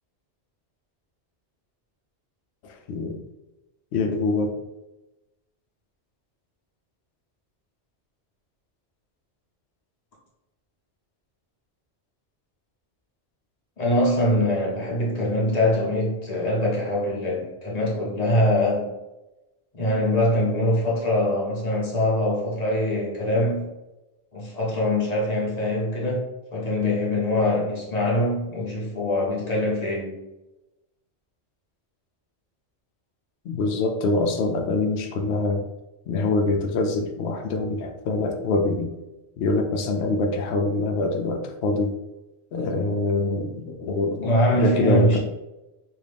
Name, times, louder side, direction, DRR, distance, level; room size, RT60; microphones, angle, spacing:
voice 1, 2.6-3.2 3.9-4.5 33.4-35.7 36.1-38.9 39.4-41.9 42.5-45.2, left 3 dB, 75° left, 5 dB, 0.8 m, -25 dB
voice 2, 13.8-18.9 19.7-23.6 24.3-26.2 26.5-30.2 44.2-45.2, left 1 dB, 40° left, -4 dB, 0.9 m, -23 dB
3.2 x 2.6 x 3.3 m, 1.0 s
omnidirectional pair, 1.1 m